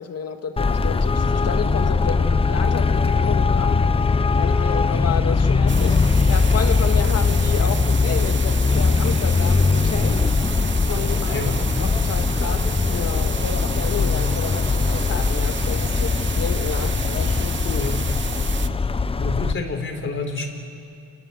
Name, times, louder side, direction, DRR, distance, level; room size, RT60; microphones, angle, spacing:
voice 1, 0.0-3.9 4.4-10.2 10.9-17.9, left 7 dB, 55° left, 7 dB, 2.0 m, -31 dB
Traffic noise roadway noise, 0.6-19.5, left 4 dB, 20° left, 0.8 m, -20 dB
sound 1, 5.7-18.7, right 7 dB, 40° right, 0.9 m, -33 dB
voice 2, 11.3-11.6 17.8-18.0 19.2-20.5, left 3 dB, 40° left, 5 dB, 4.2 m, -28 dB
29.0 x 19.0 x 8.2 m, 2.4 s
cardioid pair, 90°, 30 cm